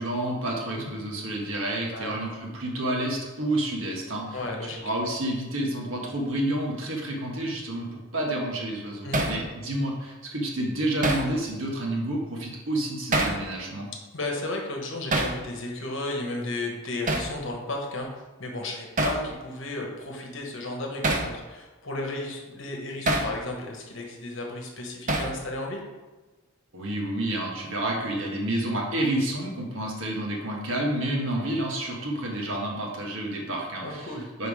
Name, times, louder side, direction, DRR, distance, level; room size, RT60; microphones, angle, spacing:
voice 1, 0.0-13.9 26.7-34.1 34.4-34.5, right 1 dB, 60° right, -1 dB, 1.3 m, -29 dB
voice 2, 4.3-4.8 9.0-9.4 14.1-18.1 18.4-25.8 31.4-31.5 33.8-34.2, left 2 dB, 55° left, 1 dB, 1.2 m, -34 dB
Hammer, 9.1-9.4 11.0-11.3 13.1-13.4 15.1-15.4 17.1-17.3 19.0-19.2 21.0-21.3 23.1-23.3 25.1-25.4, right 2 dB, 35° right, 0.6 m, -25 dB
5.1 x 4.7 x 4.9 m, 1.3 s
head